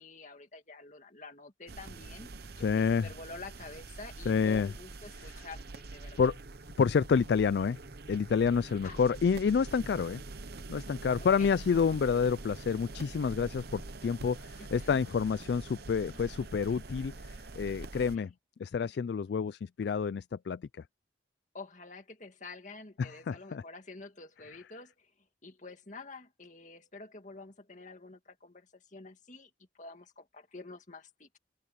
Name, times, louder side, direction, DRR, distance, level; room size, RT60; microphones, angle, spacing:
voice 1, 0.0-2.3 2.7-6.3 8.8-9.0 11.2-11.5 14.6-15.0 18.1-18.3 21.5-25.1 25.4-31.4, left 3 dB, 40° left, 2.2 m, -48 dB
sound 1, 1.7-18.2, right 3 dB, 55° right, 0.9 m, -45 dB
voice 2, 2.6-3.1 4.3-4.7 5.2-5.3 6.2-6.4 6.8-7.8 8.1-10.2 10.7-18.3 18.6-20.6 23.0-23.6, left 6 dB, 55° left, 0.3 m, -29 dB
open air
head